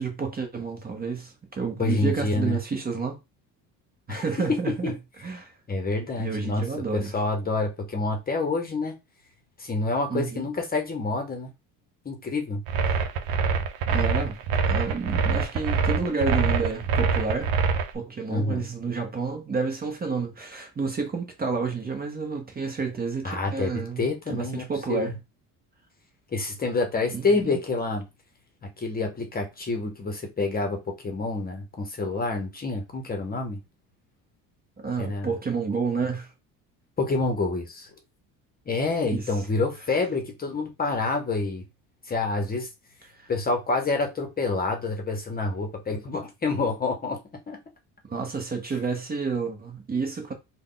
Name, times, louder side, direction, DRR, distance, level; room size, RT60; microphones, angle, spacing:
voice 1, 0.0-3.2 4.1-4.9 5.2-5.5 6.2-7.2 10.1-10.5 12.9-13.0 13.9-17.5 17.9-25.2 27.1-27.6 34.8-36.3 39.1-39.3 43.2-43.3 48.1-50.3, right 4 dB, 25° right, 0.9 m, -30 dB
voice 2, 1.8-2.6 4.1-4.2 4.8-4.9 5.7-6.7 6.9-8.9 9.6-11.5 12.0-12.6 18.3-18.6 23.2-25.2 26.3-28.0 28.8-33.6 35.0-35.3 37.0-37.9 38.7-41.6 42.1-42.7 43.3-47.2 47.5-47.6, left 3 dB, 25° left, 0.9 m, -27 dB
sound 1, 12.7-17.9, right 5 dB, 65° right, 0.8 m, -24 dB
3.4 x 2.3 x 3.8 m
cardioid pair, 110°, 38 cm